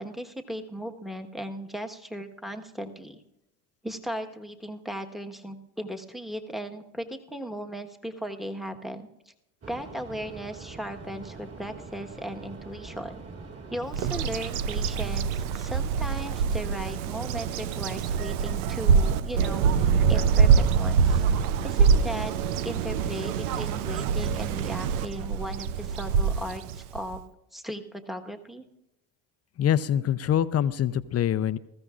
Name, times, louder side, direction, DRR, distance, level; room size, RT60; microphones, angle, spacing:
voice 1, 0.0-3.2 3.8-9.1 9.7-13.2 13.7-21.2 21.6-22.3 22.6-27.2 27.5-28.6, equal, ahead, 5 dB, 1.3 m, -37 dB
sound 1, 9.6-15.1, right 4 dB, 35° right, 2.9 m, -44 dB
Bird vocalization bird call bird song, 13.9-27.2, right 6 dB, 85° right, 0.7 m, -25 dB
voice 2, 29.6-31.6, left 10 dB, 35° left, 14 dB, 0.6 m, -24 dB
20.5 x 14.5 x 2.5 m, 0.88 s
hypercardioid pair, 75°, 43 cm